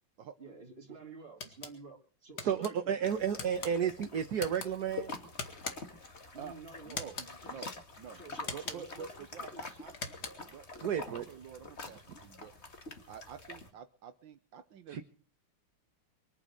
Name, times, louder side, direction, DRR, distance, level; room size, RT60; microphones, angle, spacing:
voice 1, 0.4-3.2 3.5-3.7 6.3-7.7 8.1-9.1 9.4-9.8, right 3 dB, 30° right, 3 dB, 3.1 m, -51 dB
sound 1, 1.4-1.7 2.4-2.7 3.4-3.7 4.4-4.7 5.4-6.0 6.9-7.3 8.4-9.0 9.9-10.5, left 4 dB, 55° left, 2.4 m, -42 dB
voice 2, 2.4-5.1 10.8-11.2 14.9-15.0, right 8 dB, 60° right, 7 dB, 1.6 m, -32 dB
sound 2, 3.0-13.7, left 3 dB, 35° left, 2.2 m, -47 dB
voice 3, 6.8-7.2 7.4-7.7 8.0-8.2 8.5-9.9 10.5-10.7 10.9-12.5 13.1-15.0, right 8 dB, 75° right, 9 dB, 1.7 m, -48 dB
24.0 x 8.9 x 6.4 m, 0.40 s
omnidirectional pair, 2.1 m